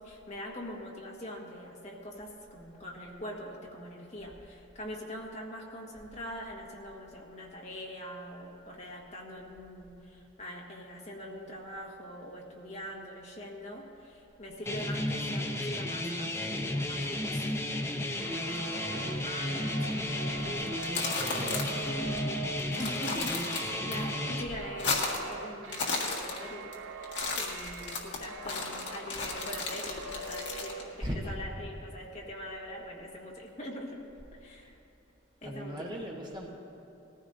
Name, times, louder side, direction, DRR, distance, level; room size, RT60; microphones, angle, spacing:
voice 1, 0.0-17.7 17.9-20.7 21.3-22.1 22.8-34.0 34.3-34.8 35.4-35.9, equal, 35° left, -2 dB, 1.5 m, -43 dB
sound 1, 14.7-24.4, left 1 dB, 15° left, 0.7 m, -33 dB
sound 2, 18.2-31.1, right 4 dB, 85° right, 0.6 m, -44 dB
sound 3, 20.7-21.9 22.2-22.3 22.6-23.9 24.3-25.3 25.6-26.7 27.0-30.8, left 3 dB, 60° left, 1.7 m, -34 dB
voice 2, 20.9-22.1 31.0-31.4 35.4-36.5, equal, 20° right, -1 dB, 1.1 m, -39 dB
19.5 x 14.5 x 2.7 m, 2.7 s
head